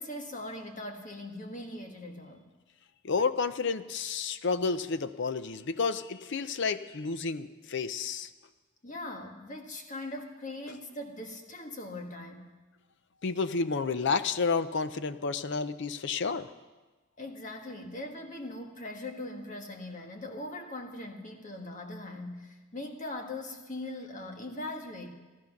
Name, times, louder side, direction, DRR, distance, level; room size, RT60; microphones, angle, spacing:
voice 1, 0.0-2.5 8.8-12.5 17.2-25.1, left 1 dB, 35° left, 3 dB, 1.5 m, -40 dB
voice 2, 3.0-8.3 13.2-16.5, left 4 dB, 55° left, 13 dB, 0.6 m, -30 dB
14.0 x 14.0 x 5.9 m, 1.3 s
head